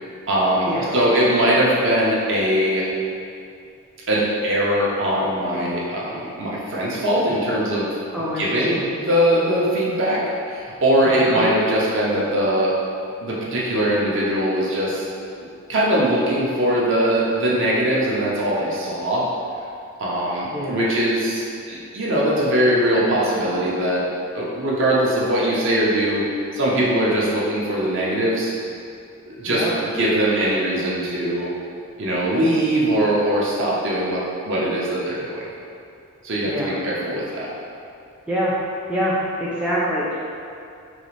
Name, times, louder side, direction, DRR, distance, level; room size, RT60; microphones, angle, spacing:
voice 1, 0.3-2.8 4.1-7.9 8.4-10.2 10.5-12.7 13.2-15.1 15.7-19.2 20.0-24.0 24.3-26.2 26.5-28.5 29.3-31.5 32.0-35.5 36.2-37.5, right 1 dB, 55° right, -5 dB, 0.7 m, -21 dB
voice 2, 8.1-8.8 11.1-11.4 20.5-20.8 29.5-29.7 36.4-36.8 38.3-38.5 38.9-40.2, equal, 5° right, -8 dB, 0.4 m, -25 dB
3.9 x 2.4 x 3.1 m, 2.5 s
head